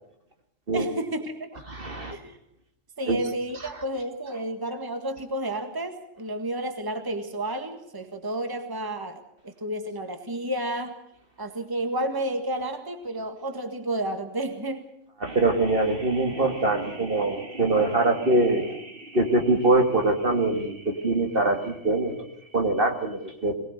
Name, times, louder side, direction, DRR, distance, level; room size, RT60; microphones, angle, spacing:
voice 1, 0.7-1.6 2.1-2.3 3.0-11.0 11.4-14.9, right 1 dB, 15° right, 6 dB, 1.8 m, -31 dB
voice 2, 1.7-2.2 3.1-3.2 15.2-23.5, right 2 dB, 45° right, 4 dB, 2.3 m, -24 dB
23.0 x 19.0 x 6.7 m, 0.77 s
omnidirectional pair, 1.3 m